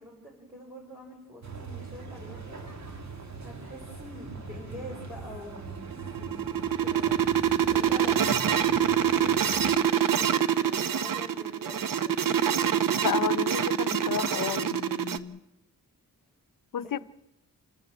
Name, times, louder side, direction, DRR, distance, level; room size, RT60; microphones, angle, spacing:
voice 1, 0.0-2.7 3.4-6.5 6.8-7.2 7.6-12.3 16.8-16.9, equal, 5° right, 5.0 m, -46 dB
sound 1, 1.4-9.7, right 4 dB, 50° right, 2.3 m, -42 dB
sound 2, 5.8-15.2, right 9 dB, 70° right, 0.9 m, -25 dB
voice 2, 13.0-15.4 16.7-17.0, left 8 dB, 65° left, 0.7 m, -32 dB
28.0 x 13.5 x 7.9 m
wide cardioid pair, 140°, 35 cm